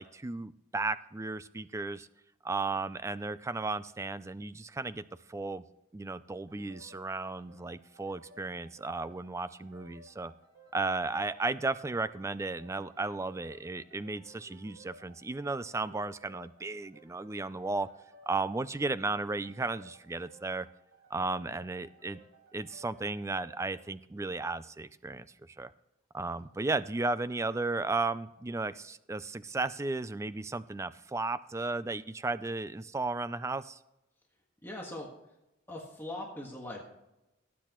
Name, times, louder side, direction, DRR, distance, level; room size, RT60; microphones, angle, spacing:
voice 1, 0.0-2.1 2.4-5.0 5.3-5.6 5.9-10.3 10.7-17.9 18.3-20.7 21.1-22.2 22.5-25.7 26.1-33.8, right 3 dB, 15° right, 15 dB, 0.3 m, -34 dB
sound 1, 6.5-23.9, right 1 dB, 85° right, 3.0 m, -58 dB
voice 2, 34.6-35.1 35.7-36.8, left 1 dB, 10° left, -1 dB, 1.5 m, -40 dB
18.0 x 8.4 x 3.0 m, 0.91 s
head